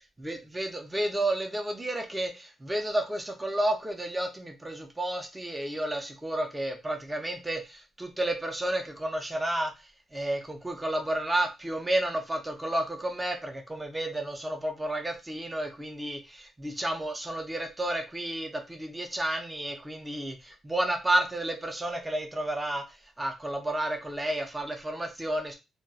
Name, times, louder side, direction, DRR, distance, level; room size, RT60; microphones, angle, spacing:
voice 1, 0.0-25.5, right 1 dB, 10° right, 3 dB, 0.5 m, -31 dB
2.3 x 2.2 x 3.8 m, 0.25 s
cardioid pair, 135°, 0 cm